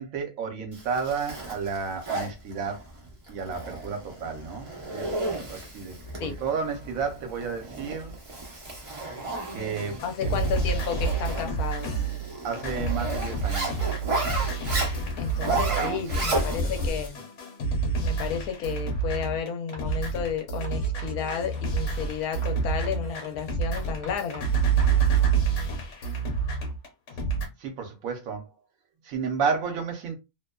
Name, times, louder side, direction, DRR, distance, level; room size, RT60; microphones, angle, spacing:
voice 1, 0.0-2.8 3.3-6.0 6.2-8.2 9.5-10.4 12.4-14.0 15.3-16.0 16.3-16.7 27.6-28.5 29.0-30.2, right 5 dB, 65° right, 1.1 m, -32 dB
Zipper (clothing), 0.7-16.9, right 2 dB, 45° right, 0.4 m, -34 dB
sound 1, 9.8-27.5, right 5 dB, 55° left, 1.1 m, -28 dB
voice 2, 10.0-11.9 15.2-17.2 18.0-24.5, left 7 dB, 75° left, 1.1 m, -32 dB
Writing, 19.7-20.1 20.6-25.0, equal, 35° left, 0.4 m, -43 dB
2.7 x 2.1 x 2.2 m
omnidirectional pair, 1.6 m